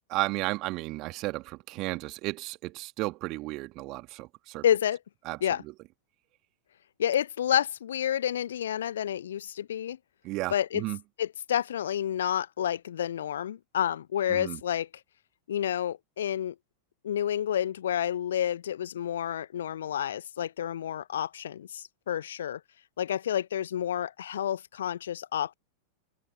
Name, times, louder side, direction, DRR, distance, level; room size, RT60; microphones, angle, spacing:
voice 1, 0.1-4.6 5.3-5.4 10.2-11.0 14.3-14.6, right 21 dB, 40° right, 2.3 m, -33 dB
voice 2, 4.6-5.0 5.4-5.6 7.0-10.0 10.5-10.8 11.2-14.9 15.5-16.5 17.0-22.6 23.0-25.5, left 10 dB, 65° left, 1.3 m, -29 dB
figure-of-eight pair, 90°, 0 cm